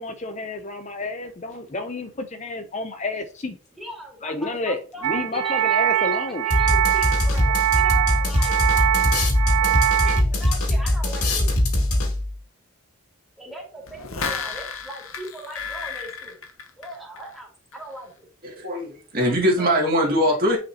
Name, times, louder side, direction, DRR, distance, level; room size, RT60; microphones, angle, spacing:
voice 1, 0.0-3.5 4.2-6.4, left 2 dB, 30° left, 6 dB, 0.6 m, -30 dB
voice 2, 3.8-9.2 9.6-11.5 13.4-16.4 16.8-18.3, right 1 dB, ahead, -4 dB, 2.8 m, -39 dB
sound 1, 5.0-10.2, right 12 dB, 65° right, 0.4 m, -22 dB
sound 2, 6.5-12.4, left 1 dB, 90° left, 2.1 m, -21 dB
sound 3, 13.9-17.4 17.7-17.8, left 5 dB, 65° left, 1.0 m, -33 dB
voice 3, 18.4-20.6, equal, 40° right, -1 dB, 2.4 m, -21 dB
9.7 x 5.0 x 2.9 m, 0.37 s
head